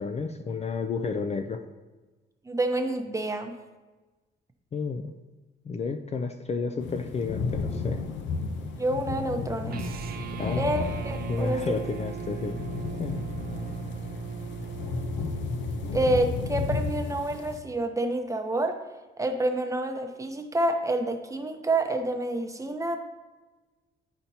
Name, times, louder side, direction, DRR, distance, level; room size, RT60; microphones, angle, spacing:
voice 1, 0.0-1.6 4.7-5.1 5.6-8.0 10.3-10.6 11.3-12.6 13.0-13.2, left 4 dB, 35° left, 7 dB, 0.4 m, -31 dB
voice 2, 2.5-3.5 8.8-9.9 10.6-11.6 15.9-18.8 19.2-23.0, right 1 dB, 15° right, 5 dB, 0.7 m, -28 dB
sound 1, 6.8-17.6, left 4 dB, 70° left, 0.6 m, -33 dB
sound 2, 9.7-16.1, right 7 dB, 50° right, 0.5 m, -37 dB
10.5 x 4.3 x 2.8 m, 1.2 s
cardioid pair, 90°, 20 cm